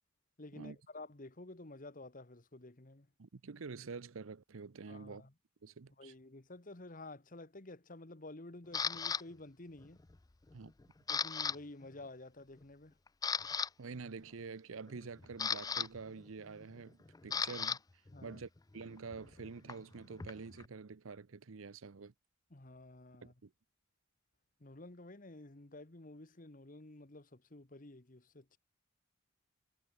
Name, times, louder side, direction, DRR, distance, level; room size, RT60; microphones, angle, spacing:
voice 1, 0.4-3.1 4.9-5.3 6.0-10.0 11.1-13.0 18.1-18.4 22.5-23.3 24.6-28.6, left 2 dB, 40° left, 1.4 m, -51 dB
voice 2, 3.2-5.3 5.6-6.1 10.5-10.7 13.8-17.8 18.2-22.1 23.2-23.5, right 4 dB, 90° right, 0.7 m, -47 dB
Camera, 8.7-9.2 9.8-10.1 10.5-11.6 11.8-12.0 12.6-12.7 13.1-13.7 14.9-17.8 18.1-20.7, left 6 dB, 20° left, 0.4 m, -37 dB
head